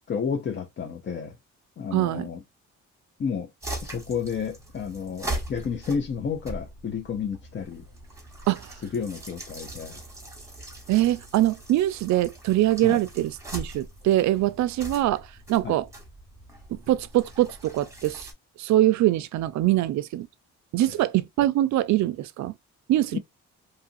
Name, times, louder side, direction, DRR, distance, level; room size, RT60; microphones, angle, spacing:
voice 1, 0.1-1.4 1.8-2.4 3.2-3.5 3.8-7.8 8.9-10.0 12.8-13.0 15.6-15.8 23.1-23.2, left 6 dB, 40° left, 0.5 m, -31 dB
voice 2, 1.9-2.3 8.5-8.8 10.9-15.9 16.7-18.3 18.6-20.3 20.7-22.5 22.9-23.2, right 14 dB, 70° right, 0.4 m, -23 dB
sound 1, 3.6-18.3, right 1 dB, 10° right, 1.1 m, -40 dB
2.8 x 2.4 x 2.5 m
cardioid pair, 90°, 30 cm